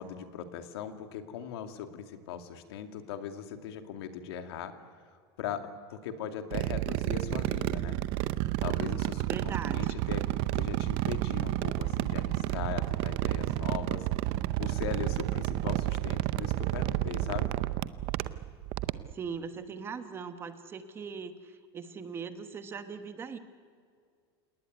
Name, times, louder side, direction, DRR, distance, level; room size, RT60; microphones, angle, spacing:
voice 1, 0.0-4.7 5.4-8.0 8.6-10.3 10.5-14.1 14.6-17.5, left 8 dB, 75° left, 7 dB, 2.5 m, -39 dB
sound 1, 6.5-19.1, right 16 dB, 40° right, 0.7 m, -31 dB
voice 2, 9.3-10.0 19.1-23.4, right 6 dB, 20° right, 9 dB, 1.2 m, -40 dB
28.5 x 19.0 x 9.5 m, 2.1 s
supercardioid pair, 165°, 13 cm